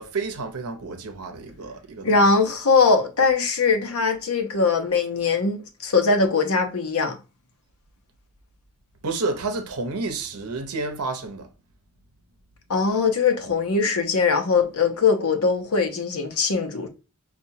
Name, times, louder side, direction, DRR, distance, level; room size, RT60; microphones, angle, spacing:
voice 1, 0.0-2.3 9.0-11.5, right 3 dB, 85° right, 0.7 m, -30 dB
voice 2, 2.0-7.2 12.7-16.9, left 4 dB, 80° left, 0.7 m, -21 dB
5.7 x 2.3 x 2.7 m
head